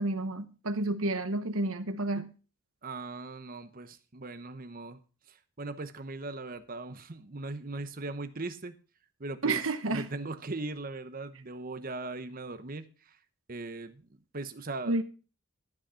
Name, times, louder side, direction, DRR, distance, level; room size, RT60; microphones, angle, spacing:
voice 1, 0.0-2.3 9.4-10.1 14.9-15.0, right 2 dB, 70° right, 1.0 m, -30 dB
voice 2, 2.8-5.0 5.3-8.7 9.2-9.6 9.9-13.2 13.5-14.0 14.3-15.0, right 3 dB, 40° right, 0.9 m, -39 dB
13.0 x 6.4 x 5.6 m
head